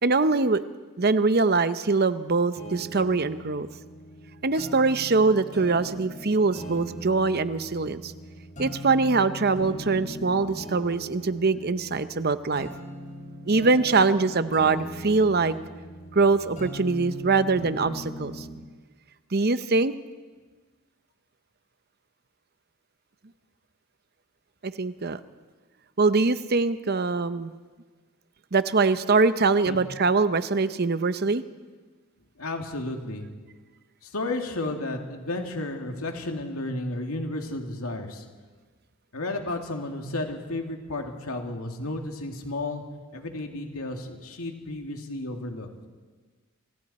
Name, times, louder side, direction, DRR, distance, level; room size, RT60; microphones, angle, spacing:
voice 1, 0.0-0.6 1.0-3.7 4.4-8.1 8.6-12.7 13.5-15.6 16.1-18.5 19.3-19.9 24.6-25.2 26.0-27.5 28.5-31.4, right 3 dB, 45° right, 12 dB, 0.8 m, -23 dB
sound 1, 2.6-18.6, equal, 35° left, 5.9 m, -40 dB
voice 2, 32.4-33.3 34.0-38.2 39.1-42.8 43.1-45.7, left 2 dB, 80° left, 3 dB, 2.5 m, -32 dB
27.5 x 25.5 x 4.3 m, 1.4 s
head